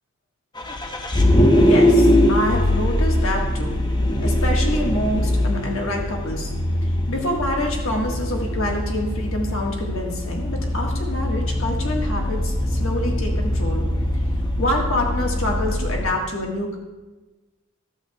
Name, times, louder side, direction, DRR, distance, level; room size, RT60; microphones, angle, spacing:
Vehicle, 0.6-16.0, left 1 dB, 20° left, 0.6 m, -21 dB
voice 1, 1.6-3.8 4.2-6.5 6.8-13.9 14.6-16.8, left 1 dB, 65° left, 0 dB, 1.5 m, -26 dB
11.5 x 7.8 x 2.3 m, 1.1 s
head